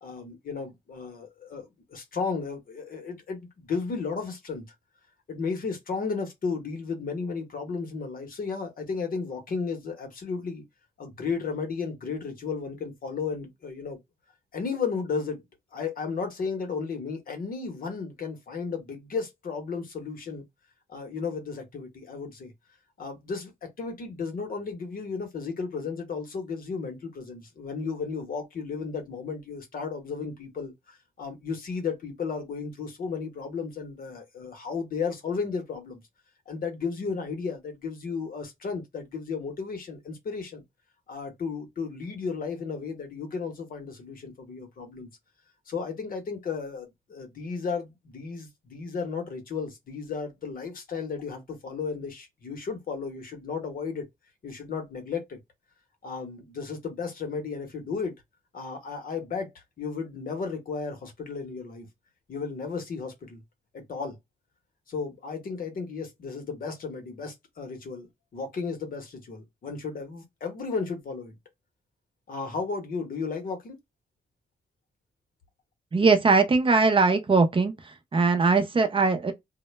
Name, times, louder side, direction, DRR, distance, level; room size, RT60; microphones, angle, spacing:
voice 1, 0.0-4.7 5.3-10.6 11.0-14.0 14.5-15.4 15.7-20.4 20.9-22.5 23.0-36.0 36.5-40.6 41.1-45.1 45.7-54.1 54.4-55.4 56.0-58.1 58.5-61.9 62.3-63.4 63.7-64.2 64.9-71.4 72.3-73.8, left 5 dB, 65° left, 0.8 m, -34 dB
voice 2, 75.9-77.7 78.1-79.3, right 4 dB, 35° right, 0.5 m, -20 dB
2.1 x 2.1 x 3.1 m
wide cardioid pair, 105°, 16 cm